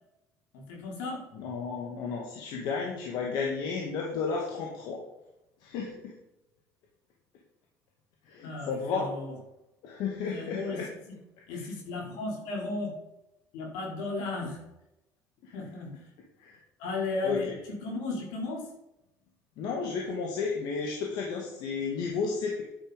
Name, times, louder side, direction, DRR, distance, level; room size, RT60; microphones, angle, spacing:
voice 1, 0.5-1.2 8.4-9.4 10.3-10.8 11.5-12.9 13.5-14.6 15.5-15.9 16.8-17.5 17.8-18.7, left 3 dB, 85° left, -2 dB, 4.5 m, -34 dB
voice 2, 1.3-5.0 5.6-6.1 8.2-9.1 9.8-10.9 11.5-11.7 15.4-15.5 16.4-16.6 17.2-17.6 19.6-22.6, left 5 dB, 70° left, 0 dB, 2.2 m, -33 dB
10.5 x 7.5 x 5.3 m, 0.91 s
cardioid pair, 110°, 7 cm